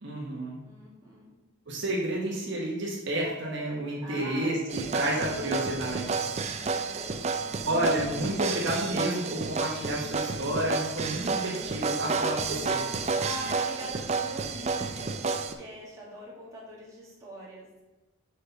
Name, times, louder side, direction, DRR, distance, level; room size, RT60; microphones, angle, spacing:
voice 1, 0.0-0.6 1.7-6.2 7.6-12.9, right 1 dB, 55° right, -3 dB, 1.2 m, -30 dB
voice 2, 0.6-1.3 4.0-5.9 6.3-7.6 13.2-17.8, right 1 dB, 15° right, -6 dB, 1.9 m, -44 dB
sound 1, 4.7-15.5, right 4 dB, 30° right, 0.4 m, -31 dB
6.5 x 5.4 x 4.1 m, 1.1 s
head